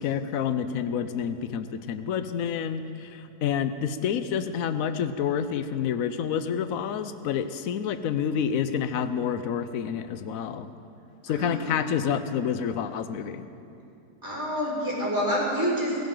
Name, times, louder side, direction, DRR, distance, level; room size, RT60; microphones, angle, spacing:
voice 1, 0.0-10.7 11.2-13.4, left 8 dB, 65° left, 11 dB, 1.1 m, -28 dB
voice 2, 11.3-11.8 14.2-16.0, equal, 10° right, -6 dB, 4.5 m, -28 dB
21.0 x 16.0 x 3.9 m, 2.7 s
omnidirectional pair, 1.7 m